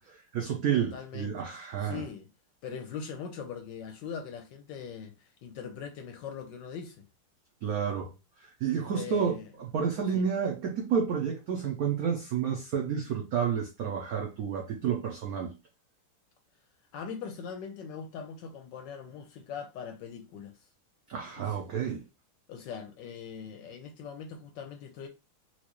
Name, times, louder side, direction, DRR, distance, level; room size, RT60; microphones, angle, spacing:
voice 1, 0.1-2.1 7.6-8.1 8.4-9.3 9.6-15.5 21.1-22.0, right 7 dB, 80° right, 0.8 m, -30 dB
voice 2, 0.8-1.4 1.8-2.3 2.6-7.1 8.9-9.5 10.1-10.3 16.9-20.5 21.4-21.6 22.5-25.1, left 6 dB, 75° left, 1.1 m, -41 dB
4.4 x 2.4 x 2.9 m
omnidirectional pair, 2.3 m